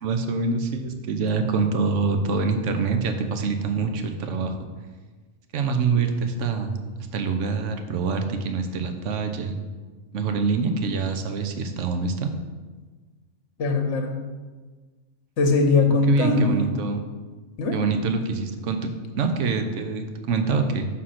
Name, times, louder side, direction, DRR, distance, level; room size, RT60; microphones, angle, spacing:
voice 1, 0.0-4.6 5.5-6.7 7.1-9.6 10.1-12.3 16.1-17.1 17.7-20.9, right 4 dB, 70° right, 7 dB, 1.0 m, -25 dB
voice 2, 13.6-14.2 15.4-16.7 17.6-17.8, left 3 dB, 65° left, 4 dB, 1.1 m, -21 dB
6.2 x 4.0 x 5.7 m, 1.3 s
omnidirectional pair, 1.3 m